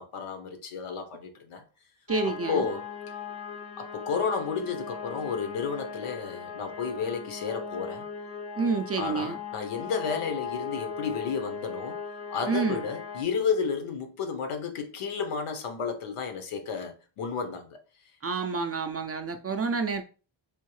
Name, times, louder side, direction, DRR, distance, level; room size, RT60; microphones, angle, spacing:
voice 1, 0.0-1.6 2.5-3.2 3.8-8.0 8.9-12.0 12.3-17.8, left 6 dB, 85° left, 0.9 m, -32 dB
sound 1, 2.1-13.2, left 6 dB, 50° left, 0.6 m, -38 dB
voice 2, 2.1-2.7 8.6-9.4 12.5-12.9 18.2-20.0, right 4 dB, 35° right, 0.4 m, -28 dB
3.6 x 2.7 x 3.1 m
cardioid pair, 90°, 50 cm